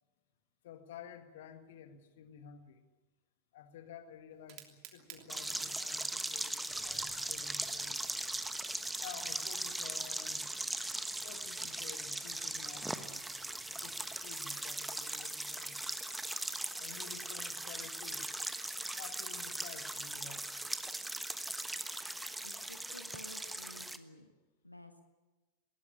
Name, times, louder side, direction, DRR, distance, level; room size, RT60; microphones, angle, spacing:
voice 1, 0.6-2.8 3.5-8.0 9.0-10.5 11.2-13.3 13.6-16.0 16.8-18.3 18.9-20.5, left 8 dB, 55° left, 8 dB, 2.0 m, -52 dB
Fire, 4.3-13.2, right 10 dB, 40° right, 3.1 m, -60 dB
sound 1, 5.3-24.0, right 1 dB, 5° right, 1.3 m, -39 dB
sound 2, 6.7-14.2, right 5 dB, 25° right, 6.9 m, -64 dB
voice 2, 22.4-24.3 24.6-25.0, left 1 dB, 85° left, 6 dB, 1.6 m, -53 dB
20.5 x 19.0 x 9.8 m, 1.2 s
figure-of-eight pair, 90°, 0 cm